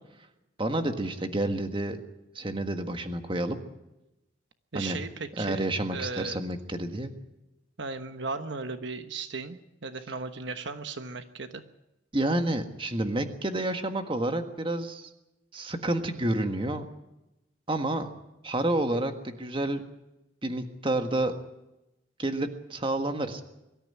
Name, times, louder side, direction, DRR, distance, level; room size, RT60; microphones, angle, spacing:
voice 1, 0.6-2.0 2.3-3.6 4.7-5.0 5.4-7.1 12.1-15.1 15.5-16.8 17.7-18.2 18.4-19.8 20.4-21.4 22.2-23.4, right 1 dB, 25° right, 7 dB, 1.6 m, -29 dB
voice 2, 4.7-6.4 7.8-11.6, right 3 dB, 65° right, 8 dB, 1.2 m, -36 dB
23.5 x 13.5 x 9.8 m, 0.92 s
head